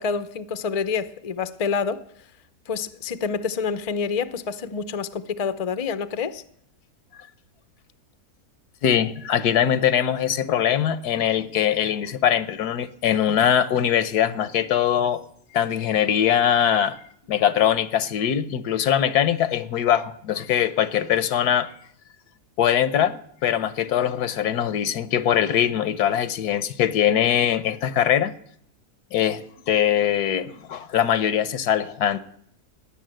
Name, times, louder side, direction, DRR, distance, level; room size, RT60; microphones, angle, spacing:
voice 1, 0.0-2.0 2.7-6.4, left 5 dB, 40° left, 0.5 m, -27 dB
voice 2, 8.8-15.2 15.5-17.0 17.3-21.7 22.6-28.3 29.1-32.2, left 9 dB, 80° left, 1.4 m, -22 dB
17.5 x 10.0 x 7.7 m
omnidirectional pair, 1.6 m